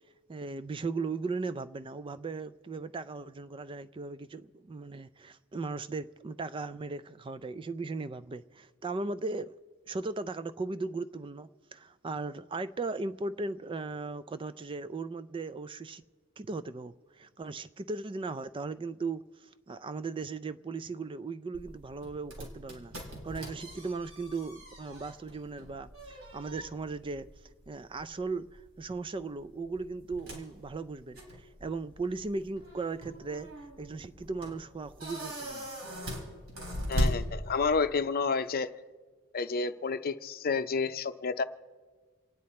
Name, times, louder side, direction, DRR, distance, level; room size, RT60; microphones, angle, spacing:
voice 1, 0.3-9.5 9.9-16.0 16.4-22.9 23.2-27.3 27.7-33.5 33.8-35.7, right 3 dB, 25° right, 0.4 m, -37 dB
sound 1, 21.5-37.9, equal, 75° right, 3.5 m, -39 dB
voice 2, 36.9-38.7 39.3-41.4, left 4 dB, 45° left, 0.6 m, -30 dB
28.0 x 9.5 x 4.2 m
head